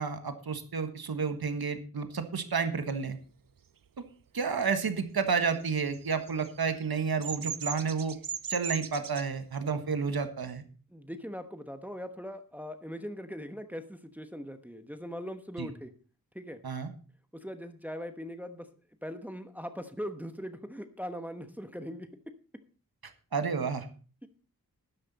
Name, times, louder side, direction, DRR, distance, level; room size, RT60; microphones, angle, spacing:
voice 1, 0.0-3.2 4.0-4.1 4.3-8.2 8.5-10.6 15.6-15.7 16.6-16.9 23.3-23.9, right 5 dB, 85° right, 8 dB, 1.4 m, -31 dB
Bird vocalization bird call bird song, 5.5-9.2, right 7 dB, 65° right, 0.7 m, -38 dB
voice 2, 10.9-15.9 16.3-16.6 17.3-18.7 19.0-22.1 24.2-24.3, equal, 5° right, 8 dB, 1.1 m, -40 dB
13.0 x 10.0 x 4.1 m, 0.38 s
wide cardioid pair, 85°, 36 cm